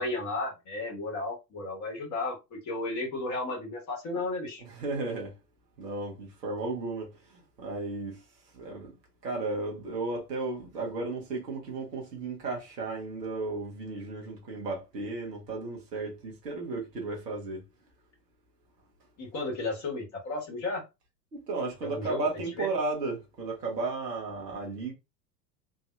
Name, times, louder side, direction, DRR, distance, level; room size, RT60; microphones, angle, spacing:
voice 1, 0.0-4.6 19.2-20.8 21.8-22.2 22.6-22.7, left 2 dB, 35° left, 1.7 m, -33 dB
voice 2, 4.6-5.3 5.8-8.2 8.5-8.9 9.2-17.6 21.3-24.9, right 3 dB, 75° right, 1.5 m, -34 dB
3.9 x 2.7 x 2.5 m
figure-of-eight pair, 85°, 49 cm